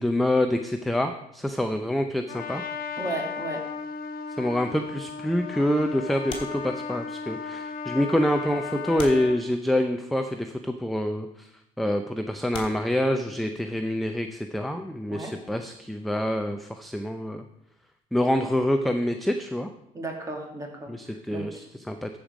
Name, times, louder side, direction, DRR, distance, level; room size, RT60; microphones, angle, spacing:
voice 1, 0.0-2.6 4.3-11.5 11.8-17.4 18.1-19.7 20.9-22.2, left 1 dB, ahead, 6 dB, 0.5 m, -26 dB
Trumpet, 2.3-9.4, left 5 dB, 60° left, 0.9 m, -35 dB
voice 2, 3.0-3.7 15.1-15.4 19.9-21.7, right 2 dB, 20° right, 1 dB, 2.3 m, -35 dB
sound 1, 6.3-7.3 8.1-8.2 9.0-10.0 11.0-11.2 11.9-12.0 12.5-13.7 15.6-17.4 17.7-17.9, left 2 dB, 30° left, 2.9 m, -43 dB
13.5 x 5.3 x 5.0 m, 0.80 s
cardioid pair, 110°, 17 cm